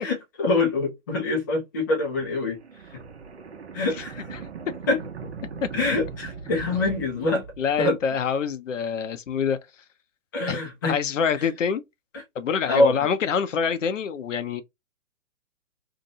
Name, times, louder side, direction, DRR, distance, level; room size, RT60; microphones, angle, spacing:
voice 1, 0.0-2.6 3.7-4.3 4.9-5.0 5.7-7.4 7.8-8.0 10.3-11.0 11.4-11.5 12.1-12.2 12.7-13.1, left 2 dB, 15° left, 0.4 m, -25 dB
sound 1, 2.1-8.0, right 5 dB, 55° right, 0.9 m, -39 dB
voice 2, 7.6-9.6 10.5-11.8 12.4-14.6, left 6 dB, 65° left, 0.6 m, -25 dB
2.8 x 2.2 x 2.7 m
figure-of-eight pair, 125°, 40 cm